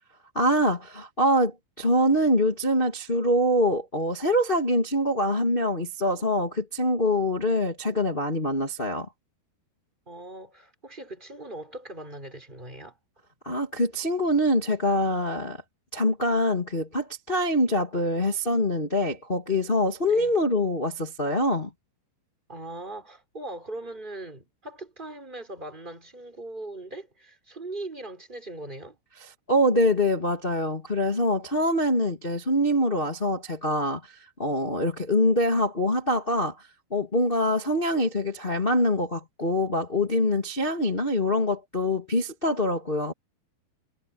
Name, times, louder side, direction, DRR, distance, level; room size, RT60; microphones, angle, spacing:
voice 1, 0.3-9.1 13.4-15.6 15.9-21.7 29.5-43.1, left 1 dB, 50° left, 0.6 m, -24 dB
voice 2, 10.1-13.0 20.0-20.3 22.5-29.0, right 2 dB, 10° right, 4.9 m, -40 dB
omnidirectional pair, 5.5 m